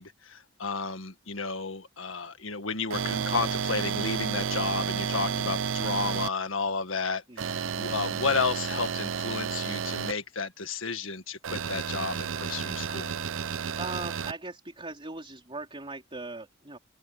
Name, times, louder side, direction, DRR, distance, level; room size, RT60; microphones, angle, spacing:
voice 1, 0.0-13.1, left 4 dB, 75° left, 1.8 m, -32 dB
sound 1, 2.9-6.3 7.4-10.1 11.4-14.3, right 7 dB, 70° right, 0.6 m, -31 dB
voice 2, 7.3-7.6 13.8-16.8, right 3 dB, 25° right, 3.8 m, -40 dB
open air
head